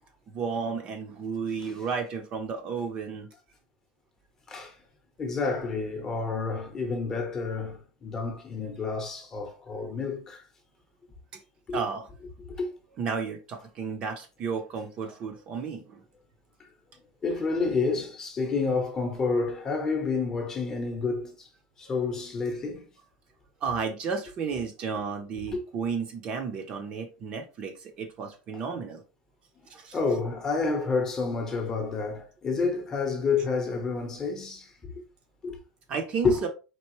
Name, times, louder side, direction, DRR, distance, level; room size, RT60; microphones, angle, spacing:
voice 1, 0.3-3.3 11.7-12.1 13.0-16.0 23.6-29.0 29.7-30.0 35.9-36.5, right 5 dB, 30° right, 0.7 m, -33 dB
voice 2, 5.2-10.4 11.7-11.8 12.4-12.7 16.6-16.7 17.2-21.5 21.8-22.9 25.5-25.6 29.9-35.0 35.4-35.6 36.2-36.4, left 4 dB, 15° left, 0.9 m, -29 dB
4.6 x 3.6 x 3.0 m
supercardioid pair, 175°, 3 cm